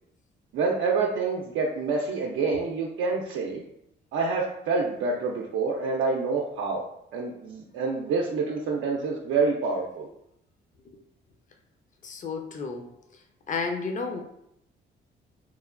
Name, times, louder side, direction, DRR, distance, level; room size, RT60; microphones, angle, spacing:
voice 1, 0.5-3.6 4.1-6.8 7.1-10.1, right 4 dB, 80° right, -1 dB, 0.5 m, -27 dB
voice 2, 12.0-12.9 13.5-14.2, left 4 dB, 40° left, 4 dB, 0.5 m, -31 dB
3.0 x 2.1 x 2.4 m, 0.78 s
cardioid pair, 90°, 20 cm